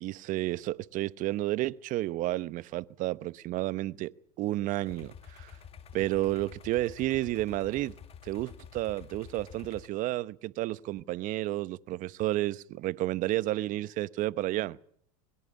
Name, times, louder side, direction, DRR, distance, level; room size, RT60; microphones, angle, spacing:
voice 1, 0.0-4.1 4.4-5.6 5.9-7.9 8.2-14.8, right 16 dB, 50° right, 0.9 m, -31 dB
sound 1, 4.9-9.9, left 8 dB, 35° left, 2.1 m, -49 dB
21.5 x 16.5 x 8.7 m
hypercardioid pair, 100°, 18 cm